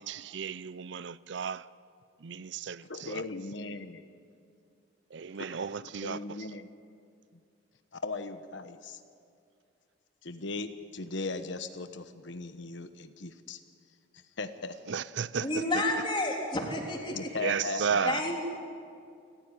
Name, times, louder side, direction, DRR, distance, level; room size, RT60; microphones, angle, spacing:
voice 1, 0.0-1.6 2.2-3.2 5.1-6.2 14.9-15.5 17.4-18.2, right 6 dB, 70° right, 0.5 m, -33 dB
voice 2, 2.9-4.0 5.4-6.7 8.0-9.0 10.2-13.6 14.1-15.0 17.1-18.4, left 3 dB, 75° left, 1.1 m, -38 dB
voice 3, 15.4-17.3 18.0-18.4, left 1 dB, 25° left, 3.4 m, -30 dB
28.5 x 15.0 x 9.8 m
head